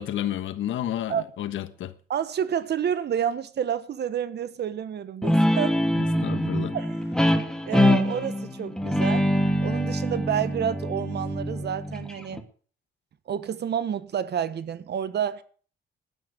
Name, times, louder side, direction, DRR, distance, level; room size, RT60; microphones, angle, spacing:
voice 1, 0.0-1.9 6.2-6.8, left 11 dB, 75° left, 1.4 m, -31 dB
voice 2, 2.1-5.8 6.7-7.0 7.6-9.3 9.6-12.5 13.3-15.4, right 9 dB, 60° right, 1.3 m, -29 dB
Guitar, 5.2-12.4, equal, 5° left, 2.4 m, -24 dB
11.5 x 10.0 x 8.1 m
cardioid pair, 90°, 20 cm